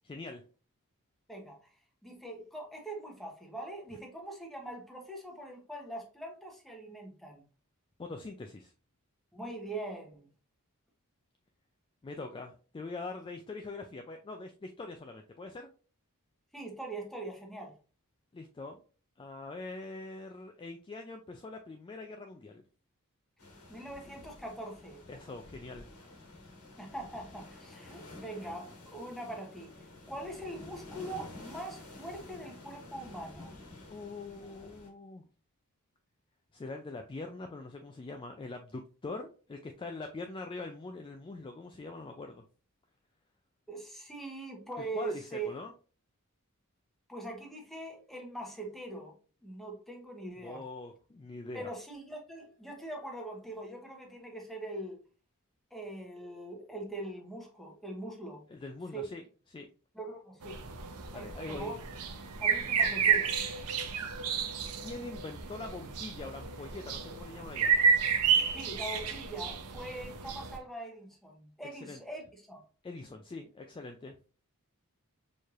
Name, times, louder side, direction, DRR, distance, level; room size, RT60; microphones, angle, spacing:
voice 1, 0.0-0.4 8.0-8.7 12.0-15.7 18.3-18.8 19.2-22.6 25.1-25.9 33.9-35.2 36.5-42.4 44.9-45.7 50.4-51.7 58.5-59.2 59.5-59.7 61.1-61.7 64.8-67.7 71.7-72.0 72.8-74.1, left 3 dB, 20° left, 0.3 m, -43 dB
voice 2, 1.3-1.7 2.0-7.4 9.3-10.3 16.5-17.8 23.7-25.0 26.8-29.7 30.1-33.5 43.7-45.5 47.1-49.1 49.4-50.6 51.5-55.0 55.7-58.4 58.9-59.1 59.9-60.6 61.1-61.8 62.4-63.7 68.5-72.6, right 2 dB, ahead, 0.9 m, -42 dB
sound 1, 23.4-34.9, left 2 dB, 90° left, 1.4 m, -50 dB
sound 2, 60.4-70.6, right 6 dB, 80° right, 0.6 m, -31 dB
4.4 x 3.2 x 2.4 m
head